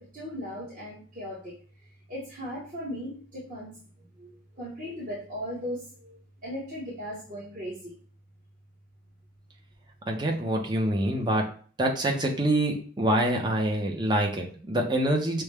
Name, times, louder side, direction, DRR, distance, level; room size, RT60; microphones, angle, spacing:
voice 1, 0.1-1.5 2.1-3.8 4.2-7.9, equal, 40° right, -7 dB, 1.2 m, -37 dB
voice 2, 10.1-11.5 11.8-15.4, right 1 dB, 20° right, 1 dB, 0.6 m, -26 dB
5.9 x 2.2 x 3.4 m, 0.43 s
head